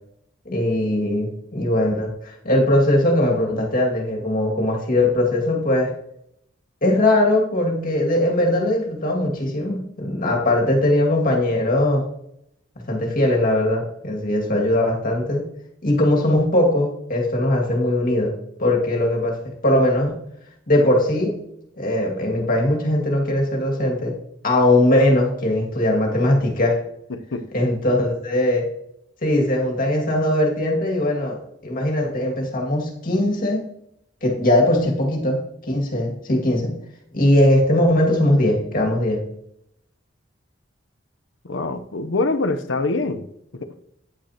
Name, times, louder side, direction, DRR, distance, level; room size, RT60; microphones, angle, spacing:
voice 1, 0.5-5.9 6.8-12.0 12.8-15.5 15.8-19.3 19.6-20.2 20.7-21.4 21.8-24.1 24.4-26.8 27.5-28.7 29.2-33.6 34.2-36.8 37.1-39.2, left 1 dB, 50° left, 2.2 m, -20 dB
voice 2, 27.1-27.5 41.4-43.3 43.5-43.7, left 2 dB, 75° left, 0.8 m, -24 dB
9.5 x 9.0 x 2.9 m
head